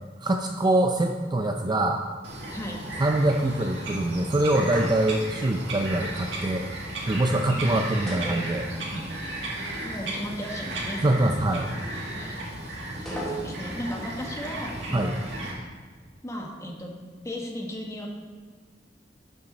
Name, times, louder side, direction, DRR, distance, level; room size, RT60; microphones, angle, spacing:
voice 1, 0.2-2.0 3.0-6.7 7.1-8.7 11.0-11.7 14.9-15.2, right 1 dB, 25° right, 4 dB, 0.4 m, -24 dB
Bird vocalization bird call bird song, 2.2-15.5, right 1 dB, 80° right, 1.8 m, -35 dB
sound 1, 4.6-5.4 8.1-9.1 9.4-9.5 13.1-13.9, right 1 dB, ahead, 3.0 m, -35 dB
voice 2, 7.5-7.8 8.9-9.0 9.8-11.3 12.1-12.4 13.1-15.2 16.2-17.0 17.2-18.1, equal, 15° left, 0 dB, 1.3 m, -36 dB
11.5 x 5.8 x 4.1 m, 1.5 s
head